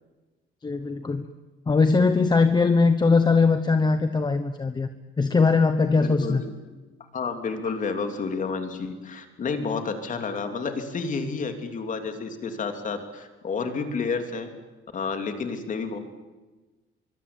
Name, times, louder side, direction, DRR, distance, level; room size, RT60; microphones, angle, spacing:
voice 1, 0.6-1.3 1.7-4.9 5.2-6.4 7.6-7.7, left 4 dB, 20° left, 9 dB, 1.1 m, -21 dB
voice 2, 6.0-6.8 7.1-14.5 14.9-16.0, left 4 dB, 35° left, 6 dB, 3.2 m, -30 dB
24.5 x 24.0 x 8.9 m, 1.2 s
cardioid pair, 165°, 21 cm